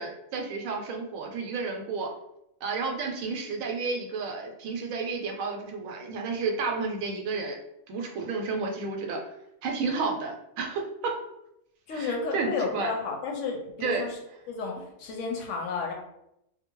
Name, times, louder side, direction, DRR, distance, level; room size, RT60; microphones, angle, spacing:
voice 1, 0.0-2.1 2.6-7.6 7.9-9.2 9.6-11.2 11.9-12.9 13.8-14.0, right 4 dB, 75° right, 2 dB, 0.9 m, -31 dB
voice 2, 11.9-14.2 14.5-15.9, left 4 dB, 70° left, 0 dB, 0.9 m, -32 dB
2.5 x 2.2 x 2.9 m, 0.82 s
omnidirectional pair, 1.4 m